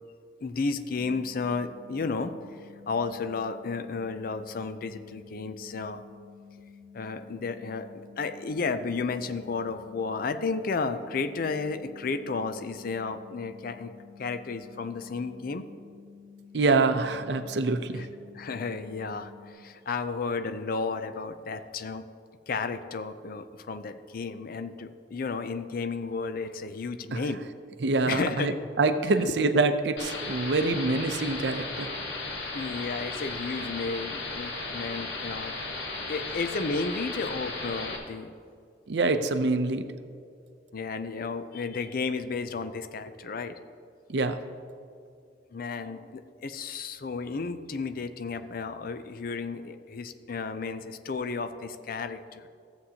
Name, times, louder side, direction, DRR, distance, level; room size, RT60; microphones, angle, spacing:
voice 1, 0.4-2.3 2.9-6.0 6.9-13.9 14.2-15.7 17.9-18.1 18.3-22.0 22.5-27.4 28.0-28.5 32.5-35.5 36.1-38.3 40.7-43.6 45.5-52.5, left 4 dB, 55° left, 10 dB, 0.5 m, -33 dB
sound 1, 1.0-19.5, left 6 dB, ahead, 2.1 m, -51 dB
voice 2, 16.5-18.1 27.1-27.2 27.8-28.5 28.8-31.9 38.9-39.9 44.1-44.4, right 3 dB, 70° right, 9 dB, 0.6 m, -25 dB
sound 2, 30.0-38.0, left 3 dB, 85° left, 1.5 m, -35 dB
14.0 x 7.9 x 2.8 m, 2.3 s
head